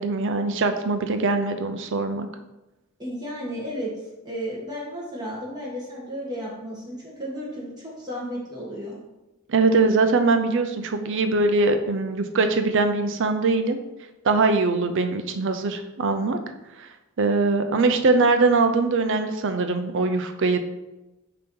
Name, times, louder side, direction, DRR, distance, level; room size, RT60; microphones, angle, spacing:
voice 1, 0.0-2.3 9.5-13.8 14.2-16.4 16.8-16.9 17.2-20.6, right 3 dB, 60° right, 8 dB, 0.5 m, -22 dB
voice 2, 3.0-3.9 4.2-9.0, equal, 20° right, -5 dB, 1.5 m, -33 dB
6.8 x 2.9 x 5.4 m, 1.0 s
head